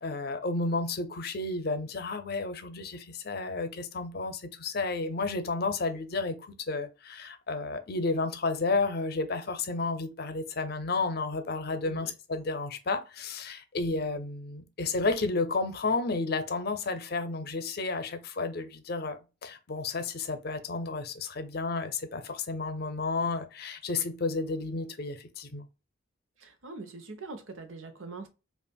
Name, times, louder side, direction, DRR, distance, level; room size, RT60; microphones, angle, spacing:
voice 1, 0.0-25.7, left 3 dB, 50° left, 0.6 m, -32 dB
voice 2, 26.4-28.3, right 3 dB, 85° right, 0.8 m, -43 dB
5.3 x 2.4 x 2.3 m
head